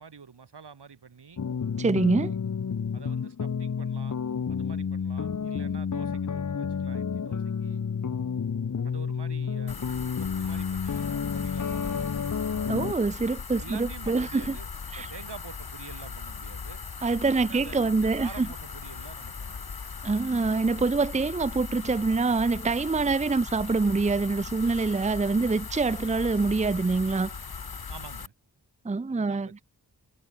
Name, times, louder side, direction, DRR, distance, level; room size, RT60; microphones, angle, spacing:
voice 1, 0.0-1.4 2.9-4.2 4.5-7.8 8.8-9.8 10.2-12.3 13.5-14.7 14.9-16.8 17.4-19.7 27.9-28.3 29.1-29.6, right 6 dB, 90° right, 7.1 m, -47 dB
sound 1, 1.4-12.9, left 6 dB, 50° left, 1.0 m, -30 dB
voice 2, 1.8-2.3 12.7-14.5 14.9-15.1 17.0-18.5 20.0-27.3 28.8-29.5, right 3 dB, 20° right, 0.6 m, -25 dB
sound 2, 9.7-28.3, left 5 dB, 65° left, 3.4 m, -39 dB
wide cardioid pair, 75°, 39 cm